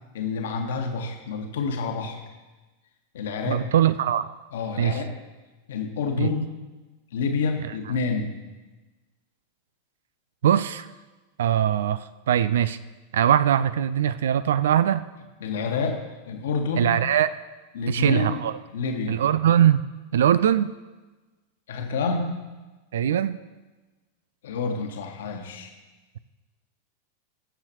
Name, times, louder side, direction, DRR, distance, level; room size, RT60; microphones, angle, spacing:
voice 1, 0.1-2.2 3.1-3.6 4.5-5.1 5.7-6.4 7.1-8.3 15.4-17.0 17.7-18.4 18.7-19.2 21.7-22.4 24.4-25.7, left 4 dB, 60° left, 3 dB, 1.4 m, -28 dB
voice 2, 3.5-4.3 4.8-5.0 6.2-6.3 10.4-10.9 11.4-12.8 13.1-15.0 16.8-17.3 17.9-18.6 19.1-19.8 20.1-20.7 22.9-23.4, right 10 dB, 60° right, 15 dB, 0.3 m, -21 dB
21.5 x 7.2 x 2.9 m, 1.2 s
figure-of-eight pair, 90°, 0 cm